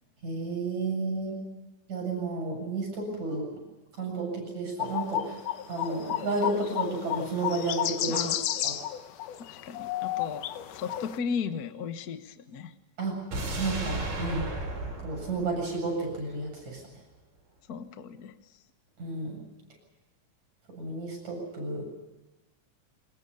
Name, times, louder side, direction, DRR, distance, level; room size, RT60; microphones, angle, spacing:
voice 1, 0.2-1.4 1.9-3.4 4.0-5.4 5.7-8.3 8.6-8.8 13.0-13.2 13.6-14.5 15.0-16.8 19.0-19.4 20.8-21.8, right 3 dB, 60° right, 1 dB, 9.1 m, -32 dB
sound 1, 4.8-11.2, left 12 dB, 80° left, 2.5 m, -32 dB
voice 2, 8.1-8.4 9.4-12.7 17.7-18.3, left 6 dB, 50° left, 9 dB, 1.1 m, -36 dB
sound 2, 13.3-16.4 16.8-16.9, right 2 dB, 85° right, 7.2 m, -35 dB
26.0 x 21.5 x 7.0 m, 1.1 s
omnidirectional pair, 3.7 m